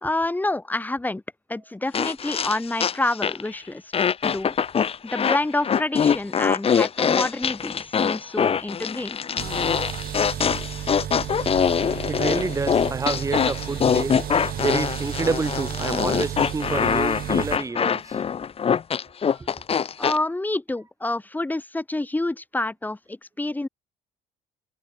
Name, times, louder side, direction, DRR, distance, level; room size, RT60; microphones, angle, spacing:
voice 1, 0.0-1.2 1.5-3.9 4.2-4.5 5.0-9.2 20.0-23.7, left 2 dB, 10° left, 2.4 m, -28 dB
sound 1, 1.9-3.5 3.9-20.2, left 7 dB, 35° left, 1.1 m, -23 dB
sound 2, 9.4-17.6, right 11 dB, 60° right, 4.3 m, -33 dB
voice 2, 12.1-14.3 14.6-18.2 19.3-19.5, right 4 dB, 20° right, 1.3 m, -28 dB
cardioid pair, 110°, 17 cm